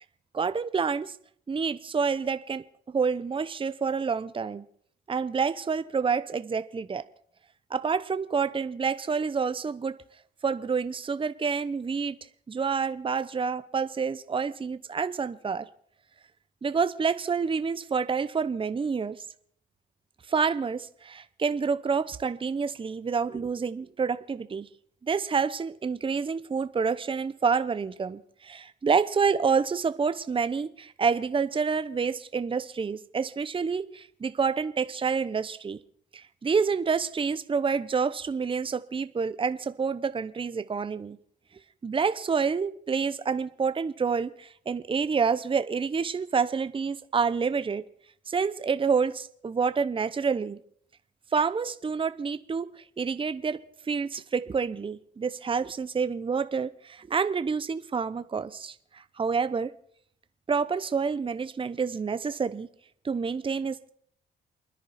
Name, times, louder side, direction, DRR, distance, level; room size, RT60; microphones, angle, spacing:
voice 1, 0.3-1.1 1.5-2.6 2.9-4.6 5.1-7.0 7.7-9.9 10.4-12.2 12.5-15.7 16.6-19.2 20.3-24.7 25.0-35.8 36.1-41.2 41.8-47.8 48.3-50.6 51.3-53.6 53.9-59.7 60.5-62.7 63.0-63.9, right 5 dB, 25° right, 0.8 m, -28 dB
29.0 x 10.0 x 4.3 m
cardioid pair, 90°, 20 cm